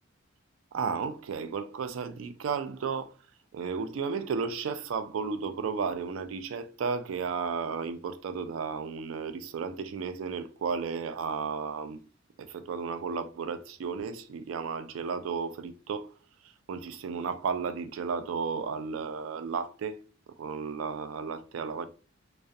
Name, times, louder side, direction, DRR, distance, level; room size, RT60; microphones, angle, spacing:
voice 1, 0.7-3.1 3.5-12.0 12.4-16.1 16.4-20.0 20.4-21.9, right 5 dB, 85° right, 0.3 m, -33 dB
2.3 x 2.1 x 2.6 m
head